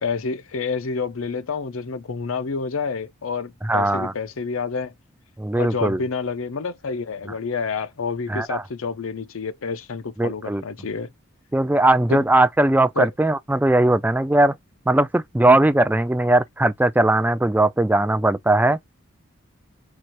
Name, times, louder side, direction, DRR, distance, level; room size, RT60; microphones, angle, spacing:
voice 1, 0.0-4.9 5.6-11.1 12.1-12.2 13.0-13.1, left 5 dB, 75° left, 0.6 m, -28 dB
voice 2, 3.6-4.1 5.4-6.0 8.3-8.6 10.2-10.6 11.5-14.5 14.9-18.8, right 2 dB, 10° right, 0.3 m, -19 dB
4.6 x 2.5 x 4.3 m
head